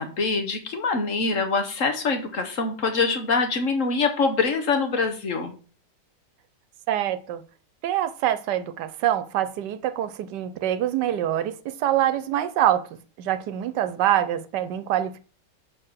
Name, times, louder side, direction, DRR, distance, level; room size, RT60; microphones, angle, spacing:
voice 1, 0.0-5.5, left 4 dB, 55° left, 1.3 m, -24 dB
voice 2, 6.9-7.4 7.8-12.8 13.2-15.2, right 11 dB, 80° right, 1.3 m, -25 dB
6.6 x 4.8 x 6.1 m
omnidirectional pair, 1.8 m